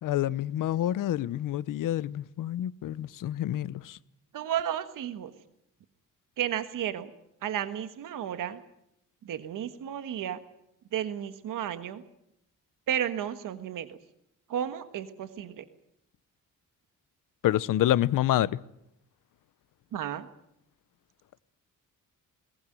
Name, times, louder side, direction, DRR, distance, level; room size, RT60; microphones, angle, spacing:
voice 1, 0.0-4.0 17.4-18.6, left 13 dB, 75° left, 18 dB, 0.8 m, -27 dB
voice 2, 4.3-5.3 6.4-7.1 7.4-8.6 9.2-10.4 10.9-12.0 12.9-14.0 14.5-15.6 19.9-20.3, right 10 dB, 80° right, 10 dB, 1.5 m, -32 dB
21.5 x 19.0 x 9.0 m, 0.80 s
wide cardioid pair, 170°, 32 cm